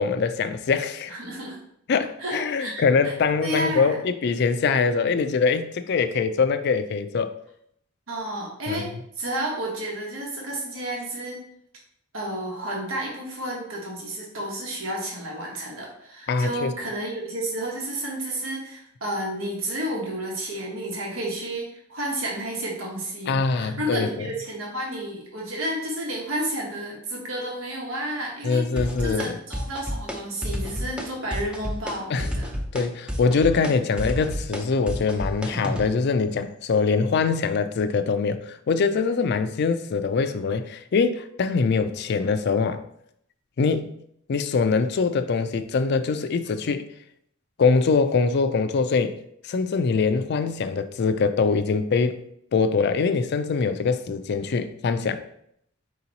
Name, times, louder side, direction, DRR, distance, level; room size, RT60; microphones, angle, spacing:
voice 1, 0.0-1.1 1.9-7.3 8.7-8.9 16.3-16.7 23.3-24.3 28.4-29.4 32.1-32.3 32.7-42.8 43.6-43.9 44.3-46.9 47.6-49.2 49.4-52.2 52.5-55.2, left 4 dB, 55° left, 0.4 m, -23 dB
voice 2, 1.1-1.6 2.2-3.1 3.4-4.0 8.1-8.9 9.2-11.4 12.1-32.5, right 1 dB, 85° right, 1.2 m, -31 dB
sound 1, 28.8-29.3 29.5-30.2 30.4-31.1 31.3-31.9 32.2-35.9, equal, 5° right, 0.5 m, -29 dB
4.7 x 2.9 x 4.0 m
head